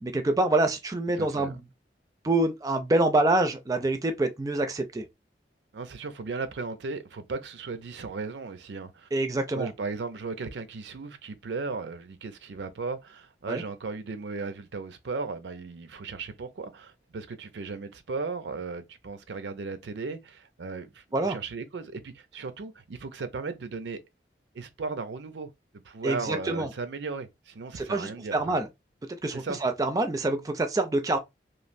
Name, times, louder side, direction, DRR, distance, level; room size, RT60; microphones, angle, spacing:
voice 1, 0.0-1.6 2.2-5.1 9.1-9.7 13.5-13.6 21.1-21.4 26.0-26.7 27.8-28.7 29.2-31.2, right 2 dB, 20° right, 0.4 m, -26 dB
voice 2, 1.2-1.6 5.7-9.1 9.5-24.0 24.5-25.5 25.8-28.6 29.3-29.6, right 4 dB, 90° right, 0.5 m, -36 dB
3.1 x 2.4 x 2.5 m
head